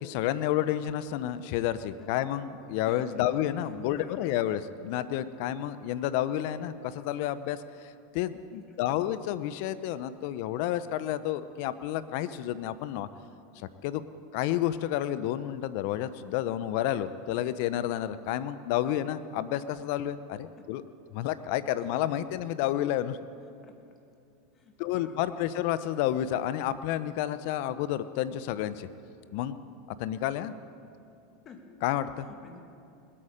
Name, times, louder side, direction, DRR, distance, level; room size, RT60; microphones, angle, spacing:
voice 1, 0.0-13.1 13.8-14.0 14.3-20.8 21.1-23.2 24.8-28.9 29.3-29.6 30.0-30.5 31.8-32.3, left 12 dB, 65° left, 14 dB, 0.6 m, -30 dB
voice 2, 2.9-3.3 3.6-4.4 5.5-5.6 8.5-8.8 20.4-20.7 23.4-23.8 24.5-25.5 31.4-31.7 32.2-32.6, left 5 dB, 35° left, 4 dB, 2.0 m, -52 dB
20.5 x 8.6 x 5.1 m, 2.5 s
hypercardioid pair, 105°, 0 cm